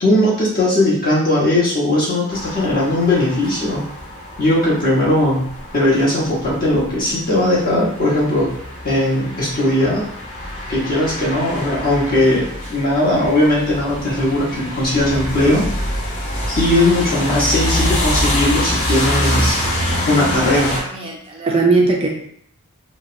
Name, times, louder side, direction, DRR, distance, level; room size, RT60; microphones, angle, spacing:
voice 1, 0.0-3.8 4.4-8.6 8.8-10.0 10.7-15.9 16.5-19.6 20.1-20.8, left 1 dB, 40° left, -6 dB, 1.0 m, -18 dB
sound 1, 2.3-20.8, left 1 dB, 65° left, 0.8 m, -25 dB
voice 2, 20.5-22.1, right 3 dB, 25° right, 0 dB, 0.3 m, -19 dB
3.2 x 2.0 x 2.4 m, 0.66 s
head